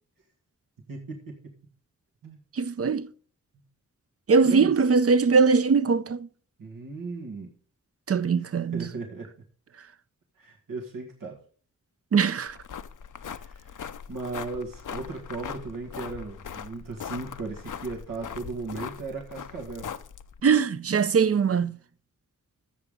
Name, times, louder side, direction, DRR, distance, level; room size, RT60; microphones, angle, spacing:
voice 1, 0.9-1.5 2.2-2.4 4.4-4.7 6.6-7.5 8.7-9.3 10.4-11.4 13.3-13.8 14.1-19.9, right 3 dB, 90° right, 1.8 m, -36 dB
voice 2, 2.5-3.1 4.3-6.3 8.1-8.9 12.1-12.6 20.4-21.8, right 5 dB, 45° right, 0.6 m, -21 dB
sound 1, 12.5-20.4, left 7 dB, 65° left, 0.7 m, -40 dB
14.0 x 7.0 x 3.7 m
cardioid pair, 40°, 33 cm